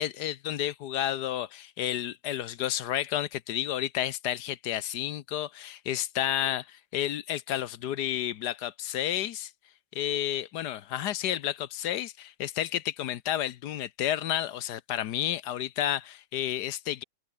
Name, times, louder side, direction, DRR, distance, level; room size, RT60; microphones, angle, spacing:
voice 1, 0.0-6.6 6.9-9.5 9.9-17.0, left 11 dB, 75° left, 1.3 m, -31 dB
open air
omnidirectional pair, 1.8 m